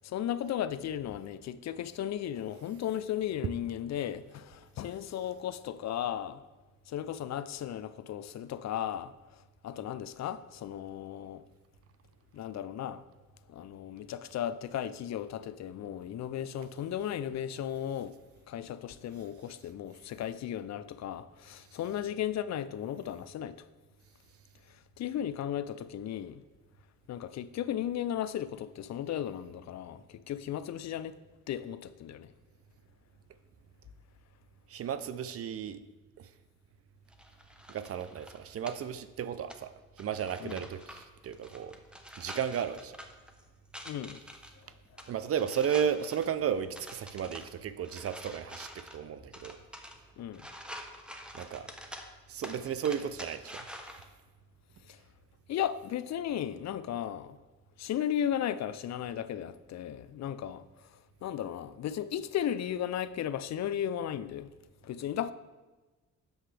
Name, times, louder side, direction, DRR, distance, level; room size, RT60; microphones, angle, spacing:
voice 1, 0.0-6.4 6.9-9.1 9.6-11.4 12.3-13.0 13.5-18.1 18.5-23.6 25.0-26.4 27.1-31.2 31.5-32.3 40.4-40.6 43.8-44.2 50.2-50.5 54.9-55.0 55.5-57.4 57.8-60.6 61.2-64.5 64.8-65.3, left 10 dB, 60° left, 0.4 m, -35 dB
voice 2, 34.7-35.8 36.2-36.3 37.7-39.7 40.0-41.7 42.2-42.9 45.1-49.6 51.3-51.7 52.3-53.6, right 8 dB, 50° right, 0.4 m, -34 dB
sound 1, 37.1-54.1, equal, 5° right, 0.7 m, -48 dB
8.0 x 6.6 x 3.3 m
cardioid pair, 90°, 32 cm